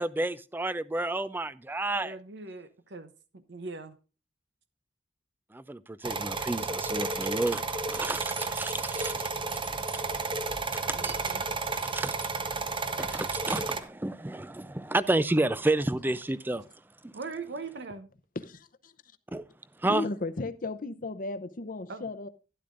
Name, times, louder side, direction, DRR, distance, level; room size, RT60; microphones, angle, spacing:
voice 1, 0.0-2.2 5.5-7.6 7.9-9.3 9.9-10.0 10.9-11.4 11.7-12.1 13.0-16.6 17.0-17.1 19.3-19.4 19.8-20.1, right 2 dB, 10° right, 0.4 m, -30 dB
voice 2, 1.9-4.0 10.9-11.4 17.1-18.1 21.9-22.1, right 3 dB, 65° right, 0.8 m, -41 dB
sound 1, 6.0-13.8, right 3 dB, 30° right, 0.8 m, -32 dB
voice 3, 19.9-22.3, left 2 dB, 50° left, 0.7 m, -34 dB
12.0 x 11.0 x 2.5 m
head